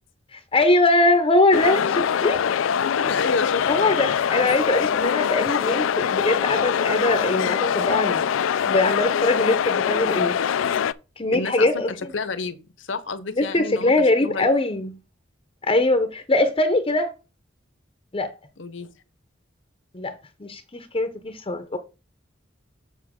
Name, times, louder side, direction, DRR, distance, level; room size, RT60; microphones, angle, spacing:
voice 1, 0.3-2.4 3.7-8.3 8.7-10.4 11.2-12.1 13.3-14.9 15.7-17.1 18.1-18.3 19.9-20.1 20.4-21.8, left 2 dB, 30° left, 0.7 m, -22 dB
sound 1, 1.5-10.9, left 8 dB, 90° left, 0.4 m, -23 dB
voice 2, 1.8-2.4 2.8-4.0 4.4-4.5 11.3-14.5 18.6-18.9, left 4 dB, 70° left, 0.9 m, -31 dB
7.0 x 6.9 x 3.7 m
head